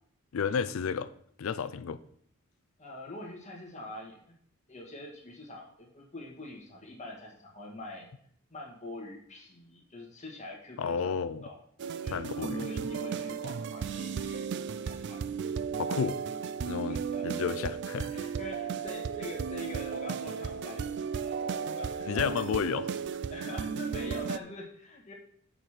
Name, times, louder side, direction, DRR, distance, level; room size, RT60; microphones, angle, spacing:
voice 1, 0.3-1.1 1.4-2.0 10.8-11.4 12.1-12.7 15.8-16.2 16.7-18.1 22.1-22.9, left 6 dB, 70° left, 14 dB, 0.4 m, -32 dB
voice 2, 2.8-4.2 4.7-8.1 8.5-11.6 12.0-14.5 14.8-15.2 16.9-17.2 18.1-22.7 23.3-25.1, left 1 dB, 35° left, -1 dB, 1.6 m, -44 dB
sound 1, 11.8-24.4, right 6 dB, 55° right, 0.3 m, -35 dB
6.8 x 4.9 x 5.7 m, 0.64 s
head